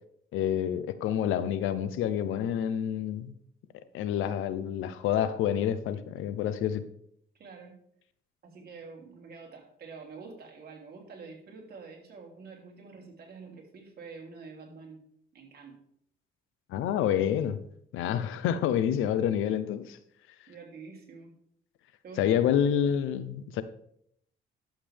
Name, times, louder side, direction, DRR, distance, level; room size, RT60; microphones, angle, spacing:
voice 1, 0.3-3.3 3.9-6.8 16.7-17.6 17.9-20.0 22.2-23.6, left 9 dB, 90° left, 13 dB, 0.7 m, -28 dB
voice 2, 7.4-7.8 8.4-15.0 15.3-15.8 20.5-21.3 22.0-22.4, right 4 dB, 50° right, -1 dB, 3.1 m, -47 dB
11.5 x 7.4 x 3.4 m, 0.68 s
cardioid pair, 90°, 20 cm